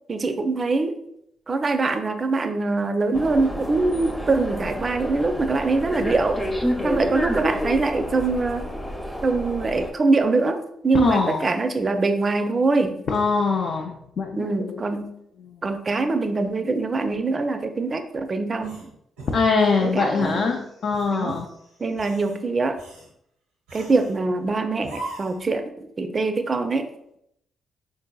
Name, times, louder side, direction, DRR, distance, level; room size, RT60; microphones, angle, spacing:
voice 1, 0.1-1.0 1.5-6.4 6.8-8.7 9.2-13.0 14.4-15.2 15.6-18.9 19.8-20.6 21.1-21.4 21.8-22.8 23.7-26.9, right 3 dB, 40° right, 8 dB, 0.4 m, -23 dB
sound 1, 3.1-9.9, equal, 5° left, 0.6 m, -29 dB
voice 2, 11.0-11.5 13.1-14.8 15.4-15.6 19.3-21.5, left 4 dB, 65° left, 0 dB, 0.4 m, -23 dB
sound 2, 18.6-19.8 20.2-20.4 20.9-21.5 21.9-22.4 22.8-23.1 23.7-24.2 24.8-25.5, right 2 dB, 90° right, 0.6 m, -39 dB
3.7 x 2.6 x 2.2 m, 0.76 s
hypercardioid pair, 45°, 0 cm